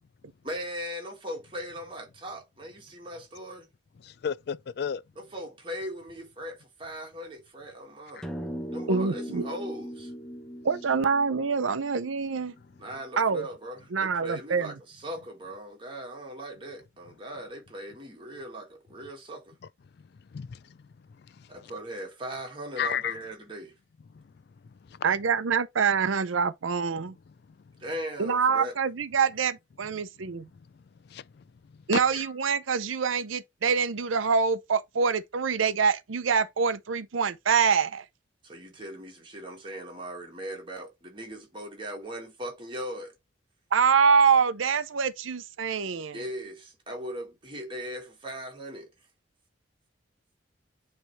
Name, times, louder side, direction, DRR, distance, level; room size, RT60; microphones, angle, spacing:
voice 1, 0.4-3.7 5.2-8.2 8.7-10.1 12.8-19.6 21.5-23.7 27.8-28.8 38.4-43.1 46.1-48.9, equal, 25° right, 1.8 m, -39 dB
voice 2, 4.0-5.0 8.2-8.3 20.3-20.7 21.4-21.7 22.8-23.2 24.1-24.2 24.9-25.0 31.1-31.4 32.1-32.3, left 8 dB, 55° left, 0.3 m, -33 dB
sound 1, 8.2-12.8, equal, 5° left, 0.8 m, -39 dB
voice 3, 8.9-9.5 10.6-12.5 13.2-13.5 13.9-14.7 25.0-27.1 28.2-30.5 31.9-38.0 43.7-46.2, right 5 dB, 90° right, 0.6 m, -25 dB
9.0 x 3.4 x 3.2 m
head